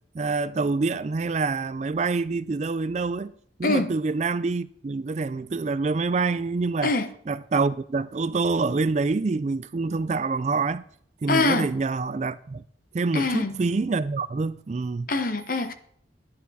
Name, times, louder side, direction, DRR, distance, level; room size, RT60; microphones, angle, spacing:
voice 1, 0.1-3.3 3.6-6.9 7.3-10.8 11.2-12.6 12.9-15.1, right 4 dB, 35° right, 0.4 m, -26 dB
voice 2, 3.6-3.9 6.8-7.1 11.3-11.7 13.1-13.5 15.1-15.7, left 3 dB, 45° left, 0.9 m, -24 dB
11.5 x 10.5 x 4.1 m
head